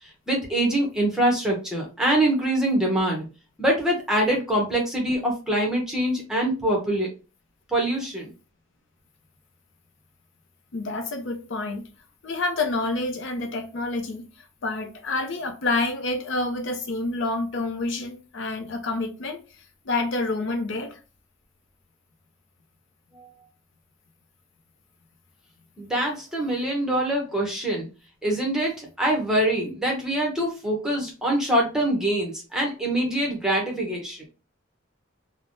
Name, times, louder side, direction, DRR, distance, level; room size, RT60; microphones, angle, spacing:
voice 1, 0.3-3.2 3.6-7.1 7.7-8.3 23.2-23.3 25.8-27.9 28.2-34.2, right 1 dB, 5° right, 0.8 m, -24 dB
voice 2, 10.7-11.9 12.2-21.0, left 2 dB, 60° left, 0.5 m, -28 dB
3.3 x 2.1 x 2.5 m
head